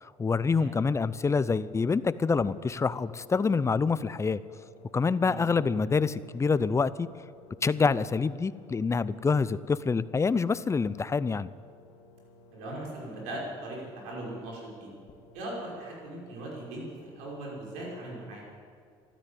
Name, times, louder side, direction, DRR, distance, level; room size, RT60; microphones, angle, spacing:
voice 1, 0.0-4.4 4.9-7.1 7.6-11.5, left 4 dB, 25° left, 16 dB, 0.6 m, -26 dB
sound 1, 0.8-18.4, left 2 dB, 55° left, 1.6 m, -56 dB
voice 2, 5.2-5.5 12.5-14.9 15.3-16.9 17.2-18.4, right 1 dB, 90° right, -3 dB, 5.6 m, -39 dB
13.5 x 12.5 x 8.4 m, 2.2 s
supercardioid pair, 85°, 13 cm